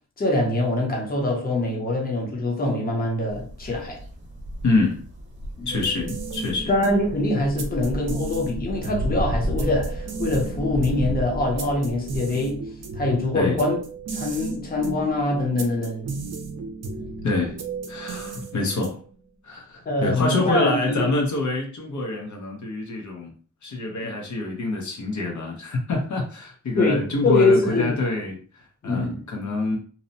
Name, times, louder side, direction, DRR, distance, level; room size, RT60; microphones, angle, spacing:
voice 1, 0.2-4.0 5.6-5.7 6.7-12.6 13.0-13.8 14.1-16.1 17.0-17.1 19.9-21.1 26.8-28.0 28.8-29.2, left 2 dB, 30° left, 0.6 m, -24 dB
sound 1, 3.3-12.2, equal, 40° right, 0.8 m, -33 dB
voice 2, 4.6-5.0 5.7-6.7 13.3-13.7 17.2-17.6 17.9-19.0 19.4-23.3 23.6-29.8, left 2 dB, 80° left, 0.7 m, -26 dB
sound 2, 5.7-19.2, right 3 dB, 60° right, 0.5 m, -35 dB
2.7 x 2.0 x 2.6 m
wide cardioid pair, 150°, 29 cm